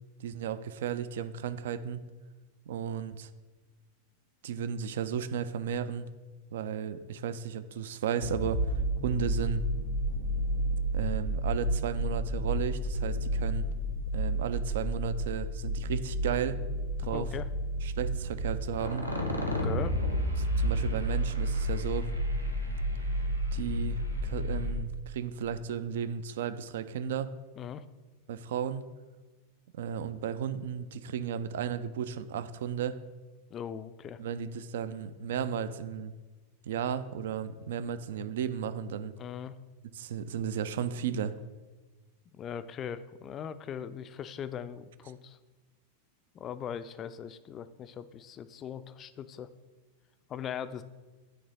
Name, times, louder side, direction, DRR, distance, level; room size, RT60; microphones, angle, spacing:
voice 1, 0.2-2.0 2.7-3.3 4.4-6.1 6.5-8.7 9.0-9.6 10.9-13.7 14.1-16.6 17.0-17.3 17.8-19.1 20.4-22.1 23.5-27.3 28.3-28.8 29.7-33.0 34.2-36.1 36.6-39.1 39.9-41.3, right 8 dB, 60° right, 13 dB, 0.3 m, -34 dB
sound 1, 8.2-24.7, equal, 85° right, 0.8 m, -31 dB
voice 2, 17.0-17.5 19.4-20.0 27.6-27.8 33.5-34.2 39.2-39.5 42.3-45.4 46.3-49.5 50.3-50.8, left 8 dB, 30° left, 12 dB, 0.3 m, -40 dB
9.4 x 3.3 x 3.9 m, 1.2 s
figure-of-eight pair, 90°, 0 cm